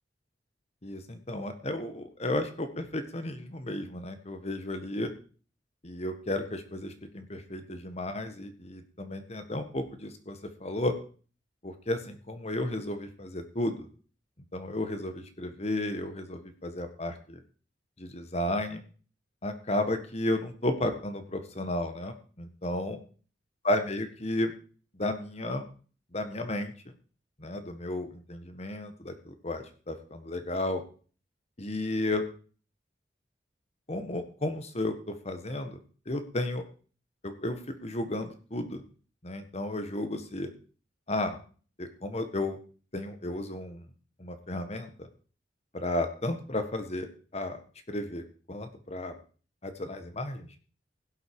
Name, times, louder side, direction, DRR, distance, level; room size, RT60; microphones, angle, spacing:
voice 1, 0.8-5.1 5.8-10.9 11.6-13.9 14.5-17.4 18.0-18.8 19.4-23.0 23.6-24.5 25.0-25.7 26.1-26.9 27.4-30.8 31.6-32.2 33.9-35.8 36.0-36.6 37.2-38.8 39.2-40.5 41.1-41.4 41.8-42.6 42.9-43.9 44.2-45.1 45.7-47.6 47.9-49.1 49.6-50.5, left 1 dB, 35° left, 8 dB, 1.6 m, -33 dB
17.0 x 8.0 x 4.7 m, 0.39 s
head